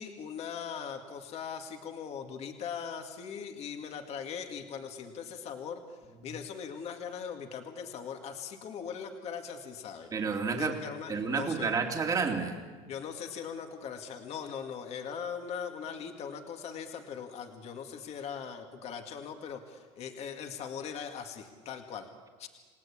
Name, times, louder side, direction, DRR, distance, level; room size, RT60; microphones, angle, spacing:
voice 1, 0.0-10.1 10.5-11.7 12.9-22.1 22.4-22.5, left 7 dB, 40° left, 5 dB, 2.1 m, -40 dB
voice 2, 10.1-10.7 11.1-12.6, right 5 dB, 20° right, 3 dB, 2.7 m, -30 dB
29.0 x 18.5 x 8.6 m, 1.5 s
cardioid pair, 155°, 17 cm